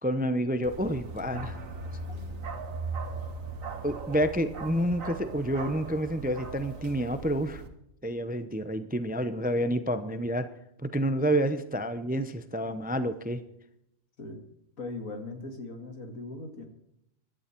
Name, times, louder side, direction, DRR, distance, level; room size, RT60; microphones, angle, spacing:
voice 1, 0.0-1.6 3.8-7.6 8.0-10.5 10.9-13.4, equal, 10° right, 11 dB, 0.5 m, -29 dB
Bark, 0.6-7.7, right 3 dB, 75° right, 1.9 m, -38 dB
voice 2, 2.1-2.4 14.2-14.4 14.8-16.7, left 2 dB, 80° left, 5 dB, 2.6 m, -40 dB
15.5 x 12.0 x 4.5 m, 0.78 s
omnidirectional pair, 1.4 m